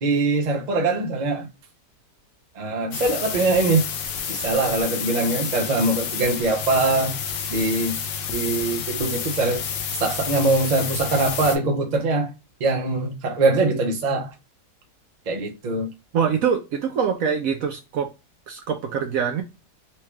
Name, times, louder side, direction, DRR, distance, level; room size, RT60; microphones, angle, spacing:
voice 1, 0.0-1.5 2.6-3.9 4.3-7.2 7.5-7.9 8.3-9.6 10.0-12.3 12.6-14.3 15.3-15.9, right 3 dB, 50° right, 0.5 m, -22 dB
sound 1, 2.9-11.6, left 7 dB, 85° left, 1.4 m, -30 dB
voice 2, 16.1-18.1 18.5-19.4, right 7 dB, 70° right, 0.8 m, -24 dB
4.4 x 2.3 x 2.9 m
omnidirectional pair, 1.9 m